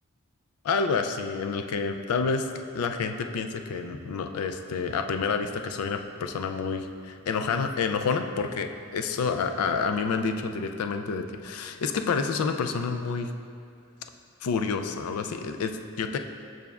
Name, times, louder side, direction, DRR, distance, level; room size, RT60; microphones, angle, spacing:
voice 1, 0.6-13.3 14.4-16.2, left 5 dB, 80° left, 7 dB, 0.4 m, -29 dB
6.9 x 6.1 x 2.3 m, 2.3 s
head